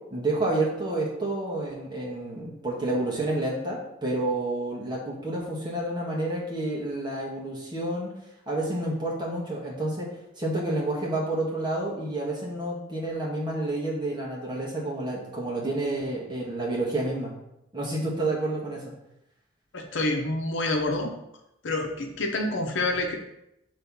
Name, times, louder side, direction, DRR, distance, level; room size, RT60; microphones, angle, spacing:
voice 1, 0.1-8.1 8.5-10.1 10.4-17.3 17.7-18.9, right 2 dB, 20° right, -5 dB, 1.7 m, -29 dB
voice 2, 19.7-21.2 21.6-23.2, left 2 dB, 70° left, 2 dB, 0.9 m, -27 dB
6.9 x 3.3 x 5.5 m, 0.84 s
head